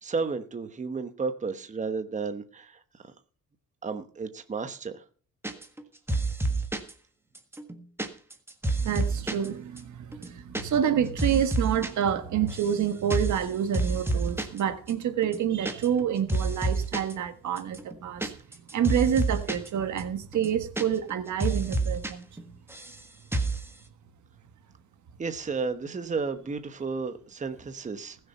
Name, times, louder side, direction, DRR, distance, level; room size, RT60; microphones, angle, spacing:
voice 1, 0.0-3.1 3.8-5.0 25.2-28.2, right 4 dB, 25° right, 1.1 m, -33 dB
sound 1, 5.4-5.8 6.1-6.9 7.3-9.5 9.8-9.9 10.1-10.6 10.9-11.9 12.2-12.8 13.1-13.4 13.7-14.6 14.9-15.0 15.2-16.0 16.3-17.1 17.6-19.7 20.0-20.1 20.3-21.1 21.4-22.1 22.4-23.0 23.3-23.6, right 2 dB, 10° right, 1.6 m, -29 dB
voice 2, 8.7-18.3 18.7-22.3, right 9 dB, 70° right, 1.6 m, -28 dB
20.0 x 6.9 x 5.6 m
cardioid pair, 145°, 31 cm